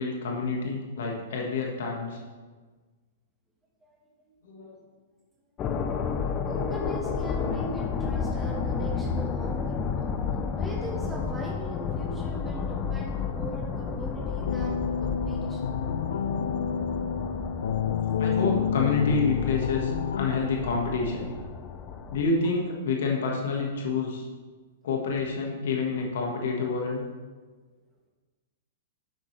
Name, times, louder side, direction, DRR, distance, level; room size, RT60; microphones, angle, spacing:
voice 1, 0.0-2.2 4.4-4.8 18.2-21.3 22.1-24.3 24.8-27.0, left 4 dB, 70° left, 0 dB, 1.6 m, -28 dB
sound 1, 5.6-22.2, left 5 dB, 20° left, 0.5 m, -32 dB
voice 2, 6.5-10.0 10.5-15.7, right 1 dB, 5° right, -2 dB, 1.5 m, -40 dB
sound 2, 14.4-20.3, left 7 dB, 85° left, 0.5 m, -29 dB
10.0 x 7.5 x 3.3 m, 1.4 s
hypercardioid pair, 160°, 0 cm